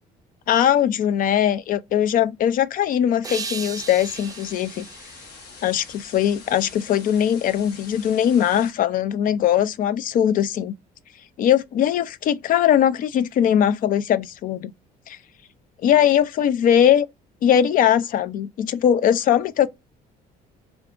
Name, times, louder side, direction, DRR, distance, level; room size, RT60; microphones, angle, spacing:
voice 1, 0.5-4.9 5.6-10.7 11.4-14.7 15.1-15.2 15.8-17.1 17.4-19.7, left 10 dB, 55° left, 0.4 m, -20 dB
sound 1, 3.2-6.4, right 5 dB, 20° right, 0.4 m, -37 dB
sound 2, 3.7-8.7, left 4 dB, 75° left, 1.1 m, -44 dB
2.4 x 2.4 x 3.6 m
cardioid pair, 110°, 17 cm